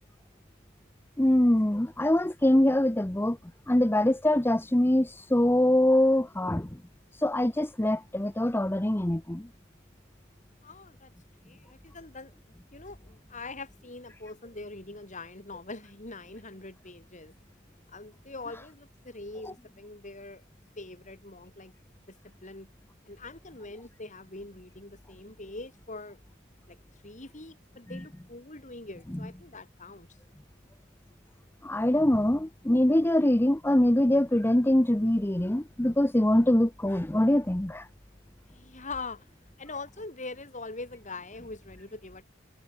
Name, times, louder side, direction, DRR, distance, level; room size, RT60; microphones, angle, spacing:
voice 1, 1.2-3.4 3.7-6.8 7.1-9.5 27.9-28.0 31.6-37.9, left 1 dB, 10° left, 0.7 m, -24 dB
voice 2, 10.6-11.1 11.4-17.3 17.9-20.4 20.8-21.7 22.1-22.2 22.4-22.7 23.1-26.2 26.7-26.8 27.0-30.1 38.5-39.3 39.6-42.2, left 3 dB, 35° left, 3.6 m, -43 dB
head